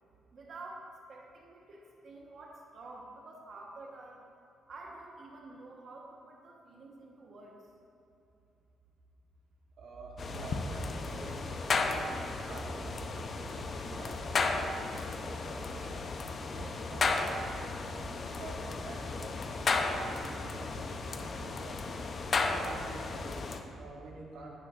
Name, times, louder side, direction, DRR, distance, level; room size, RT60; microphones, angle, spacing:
voice 1, 0.3-4.2 4.7-7.7, right 2 dB, 55° right, -1 dB, 1.2 m, -49 dB
voice 2, 9.8-11.4 11.8-12.9 13.4-16.1 16.5-17.8 18.4-19.3 19.6-21.8 22.4-24.6, right 3 dB, 70° right, -2 dB, 1.2 m, -48 dB
sound 1, 10.2-23.6, left 3 dB, 45° left, 0.7 m, -34 dB
16.0 x 5.8 x 2.5 m, 2.7 s
cardioid pair, 90°, 0 cm